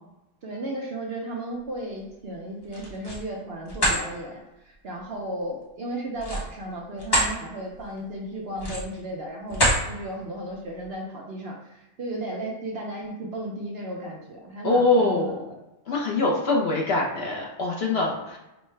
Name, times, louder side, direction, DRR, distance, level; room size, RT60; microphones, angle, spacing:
voice 1, 0.4-15.6, right 1 dB, 55° right, -2 dB, 0.7 m, -35 dB
sound 1, 2.6-3.2 3.7-4.0 6.1-7.3 7.8-8.0 8.5-9.0 9.5-9.9, equal, 20° left, 0.8 m, -24 dB
voice 2, 14.6-15.4 15.9-18.4, left 2 dB, 55° left, -2 dB, 0.8 m, -23 dB
5.4 x 2.1 x 3.2 m, 0.98 s
omnidirectional pair, 1.5 m